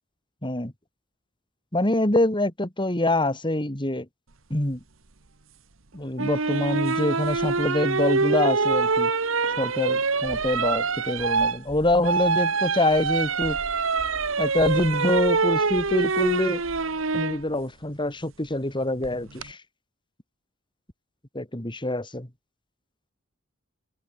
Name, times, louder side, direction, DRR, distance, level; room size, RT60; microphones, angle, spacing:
voice 1, 0.4-0.7 1.7-4.1 4.5-4.8 5.9-9.1 9.6-13.6 14.4-16.6 17.1-19.6 21.3-22.3, left 1 dB, 25° left, 3.3 m, -25 dB
sound 1, 6.2-17.4 19.0-19.5, right 4 dB, 75° right, 1.5 m, -25 dB
open air
head